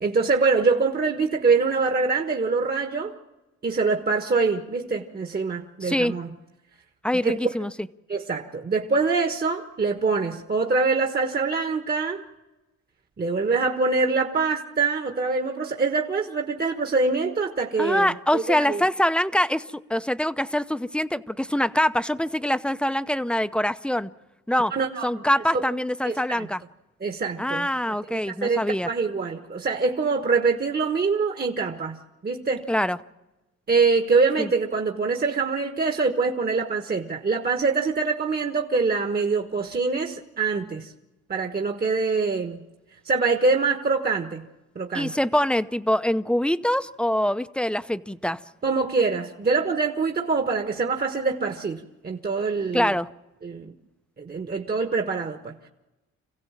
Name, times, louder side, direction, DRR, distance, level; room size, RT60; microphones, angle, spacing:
voice 1, 0.0-3.1 3.6-6.3 7.2-7.4 8.1-12.2 13.2-18.8 24.7-25.1 25.5-25.7 26.0-26.5 27.0-27.7 28.1-32.7 33.7-40.9 41.3-42.6 43.0-44.5 44.7-45.1 48.6-52.9 53.4-53.7 54.2-55.7, right 4 dB, 30° right, 4 dB, 1.4 m, -24 dB
voice 2, 5.8-6.2 7.0-7.7 17.8-19.6 19.9-24.1 24.5-24.7 25.0-26.6 27.4-28.9 32.7-33.0 34.4-34.5 44.9-48.4 52.7-53.1, left 1 dB, 5° left, 12 dB, 0.7 m, -24 dB
27.5 x 16.0 x 7.4 m, 1.1 s
cardioid pair, 90°, 30 cm